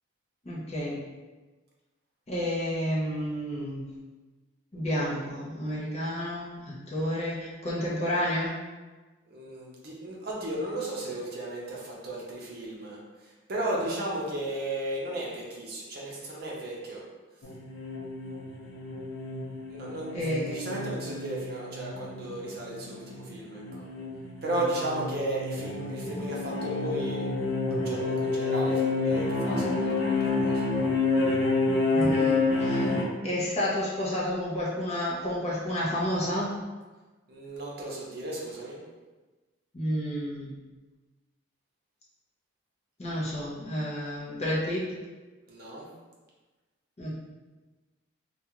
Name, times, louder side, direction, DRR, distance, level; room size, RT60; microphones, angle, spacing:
voice 1, 0.4-1.1 2.3-3.9 4.7-8.5 20.1-20.7 31.9-32.9 33.2-36.5 39.7-40.6 43.0-44.8 47.0-47.2, equal, 35° left, -7 dB, 0.6 m, -30 dB
voice 2, 9.3-17.0 19.7-20.1 20.5-23.8 24.4-27.3 27.7-30.6 37.3-38.8 45.5-45.9, right 1 dB, 50° right, -4 dB, 0.6 m, -35 dB
sound 1, 17.4-33.0, left 3 dB, 85° left, 0.5 m, -29 dB
2.3 x 2.3 x 2.9 m, 1.2 s
head